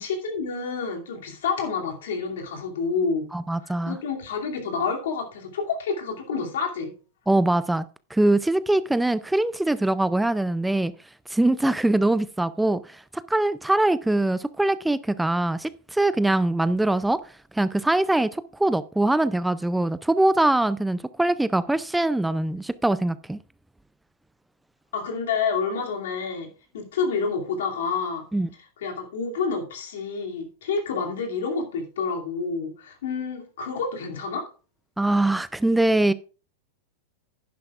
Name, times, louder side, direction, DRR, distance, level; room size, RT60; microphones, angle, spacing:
voice 1, 0.0-3.3 3.6-6.9 24.9-26.5 26.7-28.2 28.8-34.4, left 5 dB, 75° left, 2.5 m, -28 dB
voice 2, 3.3-4.0 7.3-7.8 8.1-10.9 11.3-17.2 17.5-23.4 28.3-28.5 35.0-36.1, right 2 dB, 5° right, 0.4 m, -23 dB
11.0 x 10.5 x 2.4 m
hypercardioid pair, 105°, 0 cm